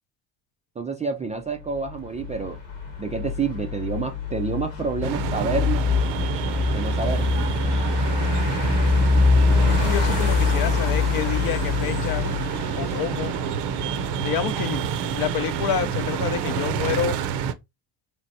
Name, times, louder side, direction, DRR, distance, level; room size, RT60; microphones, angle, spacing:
voice 1, 0.8-2.6 3.0-5.9 6.7-7.3, right 5 dB, 15° right, 0.3 m, -28 dB
sound 1, 1.7-16.5, left 4 dB, 85° left, 1.2 m, -25 dB
sound 2, 5.0-17.5, right 8 dB, 55° right, 0.6 m, -28 dB
voice 2, 9.8-12.3 12.8-13.3 14.2-17.2, left 9 dB, 45° left, 0.6 m, -28 dB
3.3 x 3.1 x 2.6 m
hypercardioid pair, 70°, 49 cm